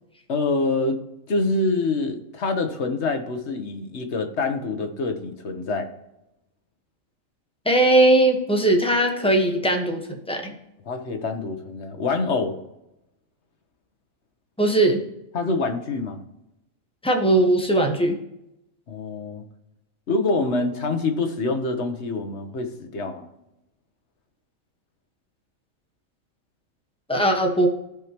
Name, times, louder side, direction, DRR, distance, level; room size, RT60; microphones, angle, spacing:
voice 1, 0.3-1.0 1.3-5.9 10.8-12.6 15.3-16.2 18.9-19.4 20.1-23.3, left 3 dB, 55° left, 5 dB, 1.3 m, -26 dB
voice 2, 7.6-10.5 14.6-15.0 17.0-18.1 27.1-27.7, right 1 dB, 5° left, 2 dB, 1.1 m, -19 dB
14.5 x 5.2 x 3.0 m, 0.87 s
omnidirectional pair, 1.4 m